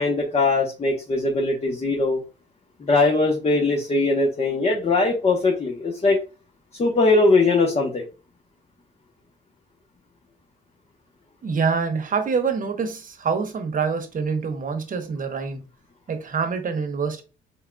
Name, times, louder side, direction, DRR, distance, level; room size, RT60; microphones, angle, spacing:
voice 1, 0.0-2.2 2.8-6.2 6.8-8.0, left 3 dB, 30° left, 1.0 m, -20 dB
voice 2, 11.4-15.6 16.1-17.2, right 5 dB, 45° right, 1.0 m, -26 dB
4.6 x 3.6 x 2.3 m
cardioid pair, 90°, 20 cm